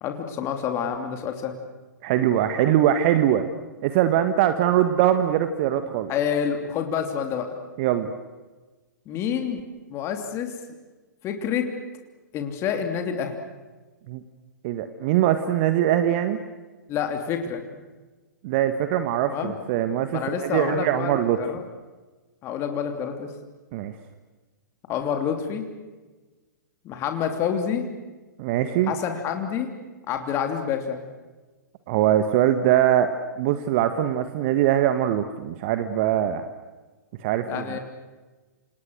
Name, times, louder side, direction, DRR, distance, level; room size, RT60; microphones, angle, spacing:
voice 1, 0.0-1.6 6.1-7.6 9.1-9.6 9.9-10.5 11.2-11.7 12.3-13.4 16.9-17.8 19.3-19.5 20.1-21.6 22.4-23.3 24.9-25.7 26.8-27.9 28.9-29.7 30.1-31.0 37.5-37.8, left 8 dB, 25° left, 5 dB, 3.1 m, -28 dB
voice 2, 2.0-3.5 3.8-6.1 7.8-8.1 14.1-14.2 14.6-16.4 18.4-21.4 23.7-23.9 28.4-28.9 31.9-36.4 37.2-37.8, right 11 dB, 40° right, 10 dB, 1.6 m, -22 dB
29.0 x 28.0 x 6.5 m, 1.3 s
figure-of-eight pair, 110°, 10 cm